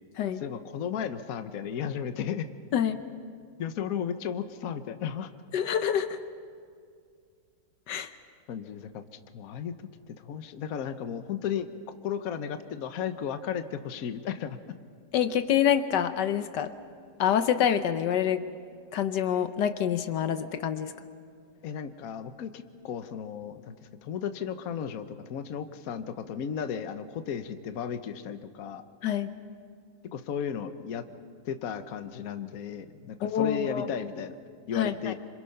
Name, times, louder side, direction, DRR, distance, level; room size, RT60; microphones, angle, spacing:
voice 1, 0.4-2.5 3.6-5.3 8.5-9.0 9.3-9.7 10.2-11.7 12.0-14.7 21.6-23.7 24.0-28.8 30.1-31.0 31.4-34.3 34.7-35.1, left 8 dB, 60° left, 10 dB, 1.3 m, -34 dB
voice 2, 5.5-6.2 7.9-8.1 15.1-16.7 17.2-18.4 18.9-20.9 29.0-29.3 33.2-33.9 34.7-35.1, left 9 dB, 75° left, 9 dB, 1.4 m, -26 dB
26.5 x 26.5 x 5.7 m, 2.2 s
omnidirectional pair, 1.9 m